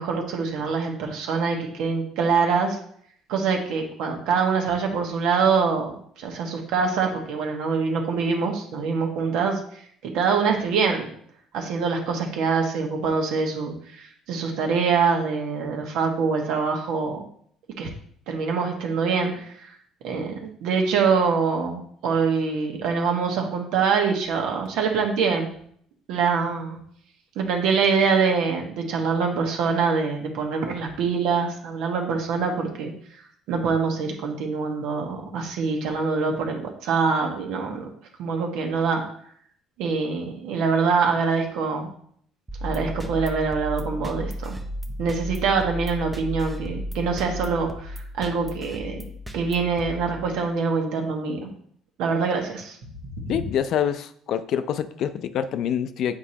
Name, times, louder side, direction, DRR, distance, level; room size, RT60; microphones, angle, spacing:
voice 1, 0.0-2.8 3.3-5.9 6.2-9.6 10.0-11.1 11.5-17.2 17.8-17.9 18.3-19.7 20.0-25.5 26.1-26.8 27.3-32.9 33.5-37.9 38.2-39.0 39.8-41.9 42.6-44.6 45.0-51.5 52.0-52.8 53.3-53.4, right 5 dB, 80° right, 2 dB, 1.4 m, -24 dB
sound 1, 42.5-50.7, equal, 10° right, 0.7 m, -34 dB
voice 2, 53.3-56.2, left 9 dB, 60° left, 11 dB, 0.5 m, -26 dB
8.2 x 4.8 x 2.9 m, 0.63 s
cardioid pair, 105°, 0 cm